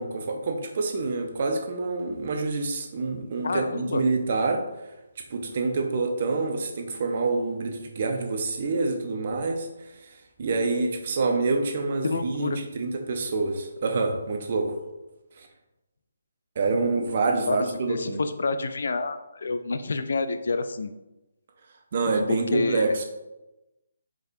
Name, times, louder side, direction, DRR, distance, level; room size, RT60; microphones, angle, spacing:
voice 1, 0.0-4.6 5.3-9.7 10.0-14.7 15.4-15.5 16.6-18.2 21.9-23.0, right 3 dB, 45° right, 4 dB, 0.6 m, -27 dB
voice 2, 3.4-4.0 12.0-12.6 17.5-17.6 17.9-20.9 22.1-22.9, left 3 dB, 60° left, 10 dB, 0.3 m, -28 dB
4.7 x 4.1 x 2.6 m, 1.0 s
figure-of-eight pair, 140°, 0 cm